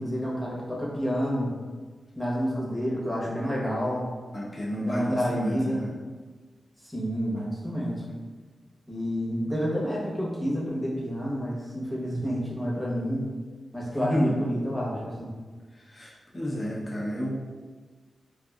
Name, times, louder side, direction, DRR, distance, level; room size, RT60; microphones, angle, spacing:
voice 1, 0.0-1.5 2.2-4.1 4.7-5.8 6.8-8.0 8.9-13.3 13.7-15.3, equal, 5° right, -5 dB, 1.0 m, -29 dB
voice 2, 4.3-5.9 8.1-8.2 14.0-14.3 15.9-17.3, equal, 30° left, -4 dB, 0.8 m, -30 dB
4.0 x 2.6 x 2.4 m, 1.4 s
cardioid pair, 75°, 0 cm